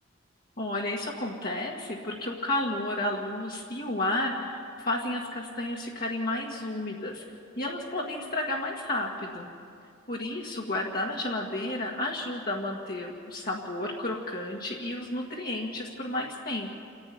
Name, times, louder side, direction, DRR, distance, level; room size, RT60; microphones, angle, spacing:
voice 1, 0.6-7.2 7.6-9.5 10.1-16.8, left 1 dB, 45° left, -3 dB, 1.9 m, -32 dB
29.0 x 11.5 x 9.4 m, 2.3 s
head